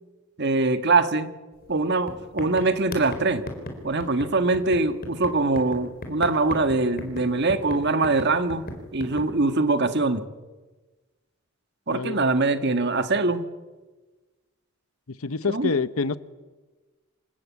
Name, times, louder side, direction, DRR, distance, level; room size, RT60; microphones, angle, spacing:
voice 1, 0.4-1.3 1.7-3.5 3.8-8.6 8.9-10.2 11.9-13.4 15.4-15.7, right 3 dB, 55° right, 9 dB, 1.6 m, -23 dB
sound 1, 1.6-1.8 2.1-9.3, left 1 dB, 45° left, 4.3 m, -37 dB
voice 2, 11.9-12.3 15.1-16.2, left 4 dB, 90° left, 15 dB, 1.0 m, -27 dB
26.5 x 19.0 x 8.5 m, 1.3 s
head